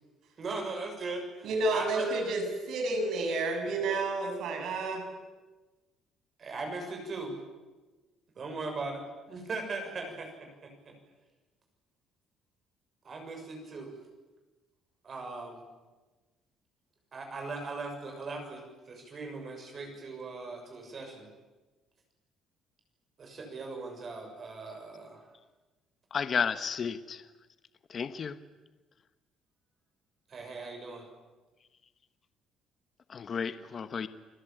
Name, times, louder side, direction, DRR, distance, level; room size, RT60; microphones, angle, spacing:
voice 1, 0.4-2.2 6.4-7.4 8.4-10.9 13.0-13.9 15.0-15.6 17.1-21.3 23.2-25.3 30.3-31.1, right 3 dB, 35° right, 3 dB, 6.8 m, -39 dB
voice 2, 1.4-5.0, right 2 dB, 65° right, 5 dB, 7.5 m, -30 dB
voice 3, 26.1-27.2 27.9-28.4 33.1-34.1, left 6 dB, 35° left, 11 dB, 1.2 m, -32 dB
28.5 x 21.5 x 9.1 m, 1.2 s
cardioid pair, 155°, 0 cm